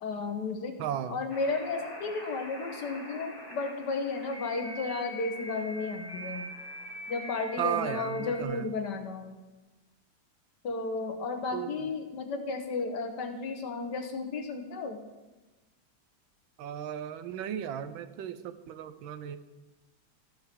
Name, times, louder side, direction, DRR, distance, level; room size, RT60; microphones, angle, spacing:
voice 1, 0.0-0.8 1.1-6.5 7.1-9.3 10.6-15.0, left 3 dB, 65° left, 6 dB, 1.6 m, -33 dB
voice 2, 0.8-1.2 7.6-8.7 11.5-11.9 16.6-19.4, right 10 dB, 85° right, 11 dB, 1.5 m, -35 dB
sound 1, 1.3-8.4, equal, 15° left, 1.6 m, -43 dB
14.0 x 4.9 x 6.6 m, 1.1 s
omnidirectional pair, 2.1 m